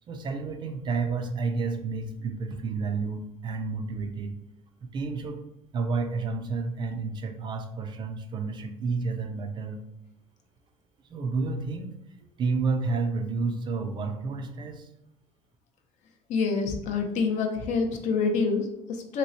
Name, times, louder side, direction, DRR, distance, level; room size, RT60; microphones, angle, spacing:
voice 1, 0.1-4.3 4.8-5.4 5.7-9.8 11.1-11.9 12.4-14.9, right 4 dB, 35° right, 6 dB, 0.4 m, -30 dB
voice 2, 16.3-19.2, left 4 dB, 55° left, 4 dB, 0.6 m, -27 dB
2.9 x 2.9 x 2.8 m, 0.84 s
cardioid pair, 130°, 14 cm